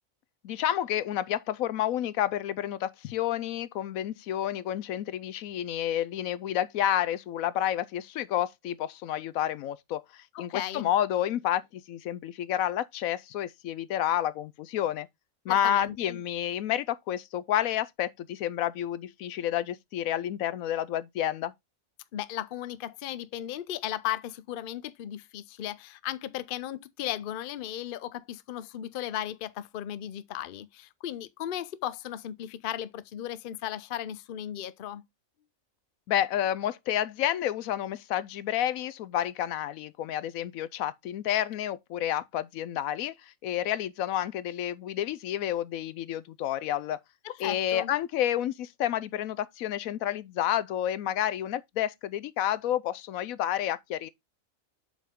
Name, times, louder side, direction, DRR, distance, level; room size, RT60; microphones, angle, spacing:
voice 1, 0.4-15.1 15.4-21.5 36.1-47.0 47.4-54.1, left 11 dB, 80° left, 1.0 m, -30 dB
voice 2, 10.3-10.9 15.5-16.2 22.1-35.0 47.2-47.9, left 12 dB, 60° left, 0.6 m, -36 dB
7.4 x 5.5 x 3.6 m
omnidirectional pair, 1.4 m